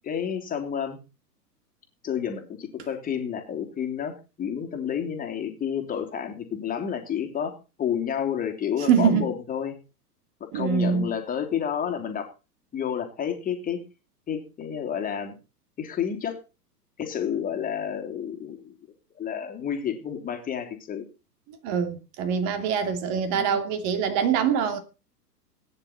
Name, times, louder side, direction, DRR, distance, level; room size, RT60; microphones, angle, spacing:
voice 1, 0.1-1.0 2.0-9.8 10.4-12.3 12.7-13.8 14.3-15.3 15.8-16.4 17.0-18.7 19.2-21.1 23.3-23.6, left 8 dB, 15° left, 3.1 m, -30 dB
voice 2, 8.9-9.2 10.5-11.1 21.6-24.8, right 7 dB, 35° right, 2.9 m, -24 dB
19.0 x 10.0 x 4.3 m
figure-of-eight pair, 105°, 49 cm